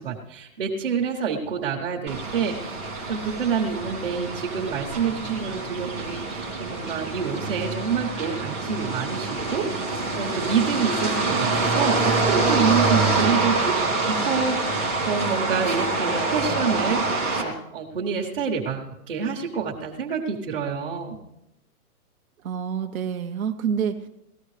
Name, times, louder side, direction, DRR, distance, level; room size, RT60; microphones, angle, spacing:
voice 1, 0.0-2.8 3.1-9.7 10.2-13.8 14.1-21.2, right 6 dB, 40° right, -2 dB, 1.1 m, -27 dB
sound 1, 2.1-17.4, right 3 dB, 5° right, 0.7 m, -26 dB
voice 2, 22.4-24.1, right 7 dB, 60° right, 5 dB, 0.8 m, -27 dB
18.5 x 13.5 x 3.3 m, 0.90 s
hypercardioid pair, 180°, 45 cm